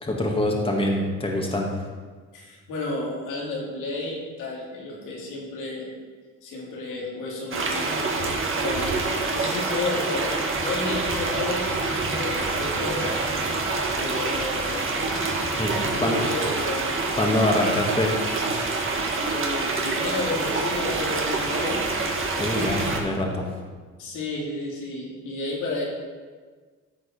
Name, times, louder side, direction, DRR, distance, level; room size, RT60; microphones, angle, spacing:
voice 1, 0.0-1.7 15.6-16.2 17.2-18.1 22.4-23.5, left 1 dB, 20° left, 0 dB, 1.8 m, -24 dB
voice 2, 2.3-5.9 6.4-10.3 10.5-13.1 14.0-15.4 15.8-16.9 19.3-21.9 24.0-25.9, left 2 dB, 90° left, -3 dB, 2.6 m, -32 dB
sound 1, 7.5-23.0, right 3 dB, 45° right, 1.7 m, -26 dB
14.0 x 4.7 x 4.3 m, 1.5 s
cardioid pair, 90°, 30 cm